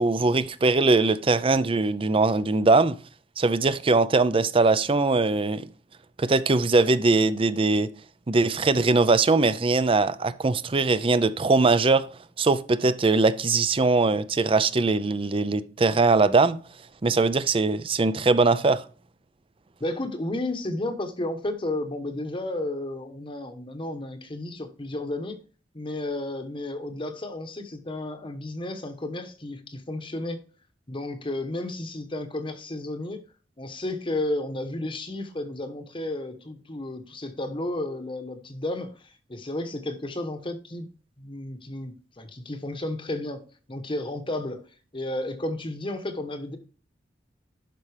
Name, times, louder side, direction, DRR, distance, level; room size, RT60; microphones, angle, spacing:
voice 1, 0.0-3.0 3.4-5.7 6.2-7.9 8.3-12.1 12.4-16.6 17.0-18.8, right 3 dB, 30° right, 0.5 m, -21 dB
voice 2, 19.8-25.4 25.7-30.4 30.9-33.2 33.6-40.9 41.2-43.4 43.7-44.6 44.9-46.6, left 1 dB, 30° left, 1.0 m, -32 dB
12.0 x 5.4 x 3.3 m
head